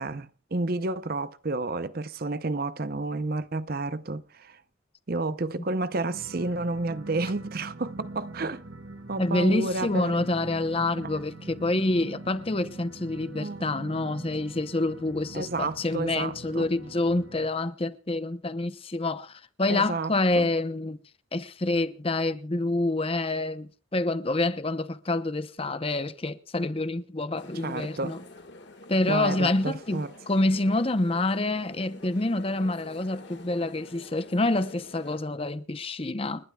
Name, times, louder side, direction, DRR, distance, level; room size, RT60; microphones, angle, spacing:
voice 1, 0.0-4.6 5.1-8.6 9.1-10.2 13.3-13.6 15.3-16.7 19.7-20.5 27.6-28.2 29.1-30.1, right 2 dB, 45° right, 0.7 m, -31 dB
sound 1, 6.1-17.5, right 2 dB, 70° right, 1.9 m, -43 dB
voice 2, 9.2-21.0 21.3-28.2 28.9-36.4, left 2 dB, 25° left, 0.7 m, -27 dB
sound 2, 27.4-35.2, left 2 dB, 55° left, 1.8 m, -48 dB
30.0 x 11.5 x 2.3 m
head